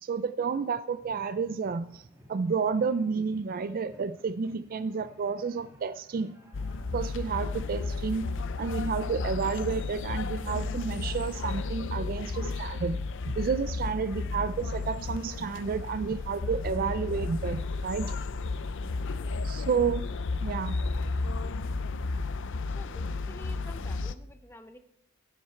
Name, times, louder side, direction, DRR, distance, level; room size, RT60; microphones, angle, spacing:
voice 1, 0.0-6.3 6.9-13.0 13.4-18.1 19.4-20.1 20.4-20.8, right 5 dB, 40° right, 13 dB, 0.3 m, -31 dB
sound 1, 0.9-17.7, equal, 10° right, 1.9 m, -56 dB
sound 2, 6.5-24.2, left 3 dB, 55° left, 0.5 m, -33 dB
voice 2, 22.7-24.8, left 1 dB, 10° left, 8 dB, 0.8 m, -50 dB
15.0 x 7.7 x 4.4 m, 0.74 s
head